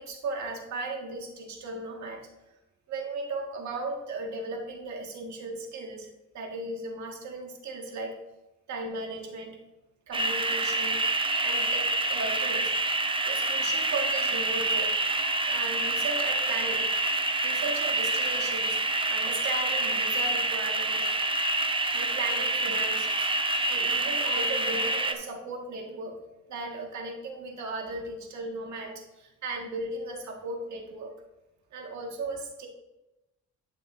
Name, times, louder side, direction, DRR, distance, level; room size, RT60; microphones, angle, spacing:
voice 1, 0.0-2.2 2.9-8.2 8.7-9.6 10.1-11.0 11.4-12.7 13.2-15.0 15.4-16.9 17.2-18.8 19.1-21.1 21.9-23.3 23.7-26.2 26.5-31.1 31.7-32.7, right 2 dB, 70° right, 1 dB, 1.8 m, -36 dB
sound 1, 10.1-25.1, right 2 dB, 15° right, 0.7 m, -27 dB
11.5 x 6.4 x 2.6 m, 0.97 s
cardioid pair, 90°, 30 cm